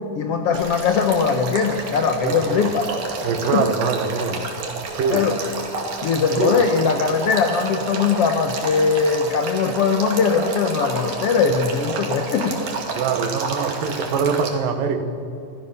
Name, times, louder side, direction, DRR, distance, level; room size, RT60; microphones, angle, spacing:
voice 1, 0.1-2.9 3.5-3.6 5.1-5.4 6.0-12.6, left 5 dB, 85° left, 6 dB, 1.3 m, -20 dB
Male speech man speaking / Stream / Trickle dribble, 0.5-14.5, right 4 dB, 55° right, 3.5 m, -30 dB
voice 2, 2.2-2.5 3.2-4.5 5.0-5.3 6.4-6.6 13.0-15.0, right 5 dB, 70° right, 8 dB, 2.8 m, -23 dB
26.0 x 16.0 x 7.0 m, 2.7 s
omnidirectional pair, 4.2 m